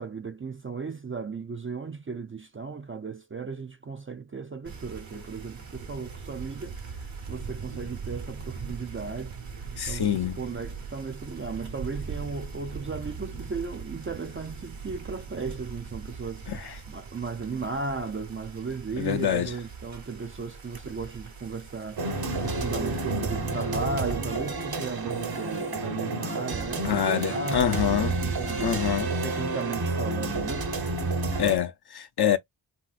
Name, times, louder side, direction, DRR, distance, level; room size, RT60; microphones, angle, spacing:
voice 1, 0.0-22.1 22.4-28.9 29.2-30.7, right 4 dB, 30° right, 0.4 m, -36 dB
sound 1, 4.6-23.2, right 5 dB, 70° right, 1.1 m, -41 dB
voice 2, 9.8-10.4 16.5-16.7 19.0-19.5 26.8-28.1 28.6-29.1 31.4-32.4, left 9 dB, 55° left, 0.5 m, -26 dB
sound 2, 22.0-31.6, right 3 dB, 50° right, 0.9 m, -30 dB
3.2 x 2.8 x 2.4 m
wide cardioid pair, 55°, 49 cm